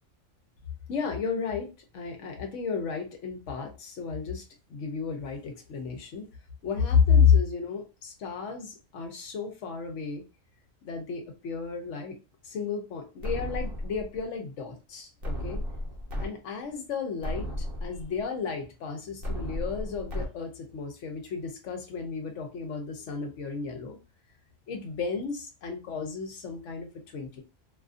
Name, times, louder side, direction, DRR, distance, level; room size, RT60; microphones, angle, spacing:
voice 1, 0.9-4.4 4.7-6.3 6.6-10.2 10.8-12.2 12.4-15.6 16.2-24.0 24.7-27.4, left 6 dB, 70° left, 4 dB, 1.0 m, -31 dB
sound 1, 13.2-14.2 15.2-16.3 16.7-16.8 17.2-18.2 19.2-20.3, equal, 50° right, 0.9 m, -34 dB
2.7 x 2.5 x 2.4 m, 0.29 s
omnidirectional pair, 1.4 m